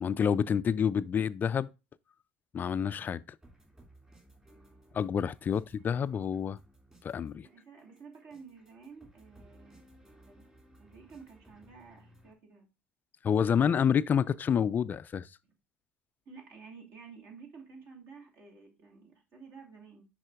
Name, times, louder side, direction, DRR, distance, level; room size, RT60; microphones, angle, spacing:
voice 1, 0.0-1.7 2.5-3.2 4.9-6.6 7.0-7.5 13.2-15.3, left 7 dB, 30° left, 0.4 m, -28 dB
sound 1, 3.4-12.3, right 1 dB, 15° right, 2.7 m, -59 dB
voice 2, 7.4-9.9 10.3-10.5 10.8-12.7 16.3-20.1, right 5 dB, 50° right, 2.7 m, -52 dB
10.5 x 4.1 x 2.4 m
figure-of-eight pair, 60°, 6 cm